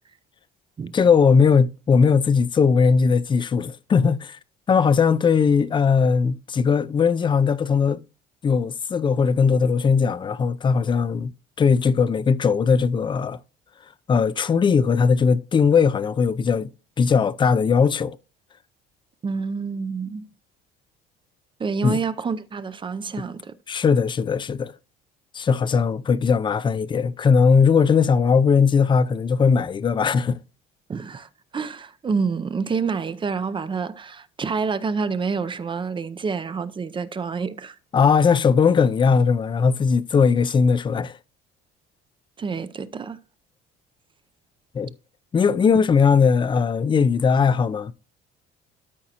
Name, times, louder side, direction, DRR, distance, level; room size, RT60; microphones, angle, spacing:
voice 1, 0.9-4.4 4.7-8.0 8.4-11.3 11.6-13.4 14.1-16.7 17.0-18.2 21.8-22.0 23.7-24.7 25.3-30.4 37.9-41.2 44.7-44.9 45.3-47.9, left 5 dB, 25° left, 0.4 m, -19 dB
voice 2, 19.2-20.3 21.6-23.5 30.9-37.8 42.4-43.2, right 5 dB, 25° right, 0.5 m, -28 dB
13.0 x 4.9 x 2.9 m
cardioid pair, 115°, 20 cm